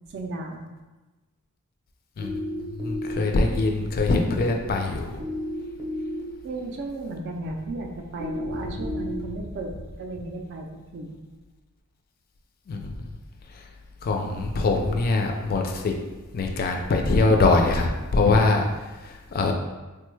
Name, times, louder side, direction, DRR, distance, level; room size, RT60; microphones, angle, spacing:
voice 1, 0.1-0.6 6.4-10.7 10.9-11.2, right 2 dB, 55° right, 3 dB, 0.4 m, -34 dB
sound 1, 2.2-3.2 5.2-6.2 8.2-9.2, left 1 dB, 20° right, 0.7 m, -31 dB
voice 2, 2.8-5.2 12.7-12.9 14.0-16.0 16.3-18.6 19.3-19.5, left 3 dB, 45° left, 3 dB, 0.3 m, -22 dB
3.3 x 2.2 x 3.1 m, 1.2 s
head